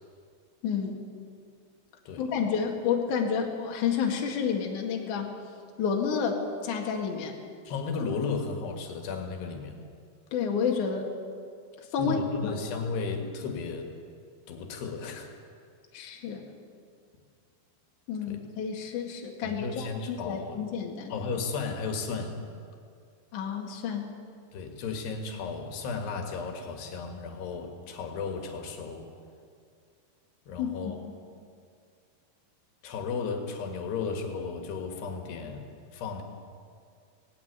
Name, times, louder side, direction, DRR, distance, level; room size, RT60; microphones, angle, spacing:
voice 1, 0.6-1.0 2.2-5.3 5.8-6.4 6.6-7.3 10.3-11.1 11.9-12.5 15.9-16.4 18.1-21.3 23.3-24.1 30.6-31.1, left 6 dB, 55° left, 1 dB, 3.1 m, -30 dB
voice 2, 7.7-9.8 12.0-13.9 14.5-15.3 18.3-18.4 19.4-20.6 21.1-22.4 24.5-29.1 30.5-31.1 32.8-36.2, left 4 dB, 80° left, 4 dB, 3.8 m, -34 dB
18.0 x 17.0 x 9.6 m, 2.3 s
omnidirectional pair, 4.7 m